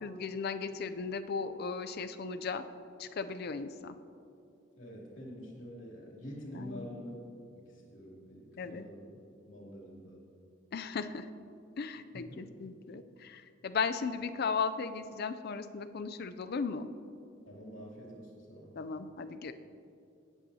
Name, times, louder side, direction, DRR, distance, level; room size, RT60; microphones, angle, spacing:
voice 1, 0.0-2.6 3.0-3.9 6.5-6.9 8.6-8.8 10.7-11.3 11.8-16.9 18.7-19.5, left 5 dB, 55° left, 10 dB, 0.4 m, -36 dB
voice 2, 4.8-7.1 7.5-9.2 9.5-10.2 12.1-12.4 17.5-18.7, equal, 80° left, -3 dB, 2.8 m, -47 dB
18.0 x 8.2 x 2.8 m, 2.6 s
head